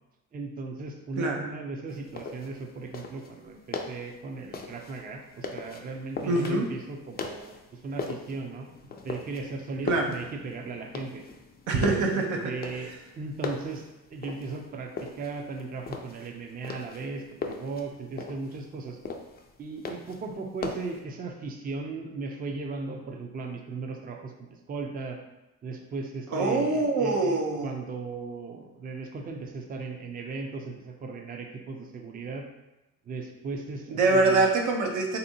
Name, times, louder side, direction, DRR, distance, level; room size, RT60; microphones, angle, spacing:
voice 1, 0.3-8.7 9.0-11.2 11.7-12.1 12.4-19.0 19.6-25.2 25.6-32.4 33.1-34.5, right 3 dB, 30° right, 3 dB, 0.4 m, -37 dB
sound 1, 1.9-21.0, left 4 dB, 30° left, 0.4 m, -40 dB
voice 2, 6.2-6.7 9.9-10.1 11.7-12.5 26.3-27.7 33.9-35.2, right 3 dB, 80° right, 1 dB, 0.6 m, -24 dB
3.4 x 2.7 x 2.6 m, 0.99 s
cardioid pair, 90°, 30 cm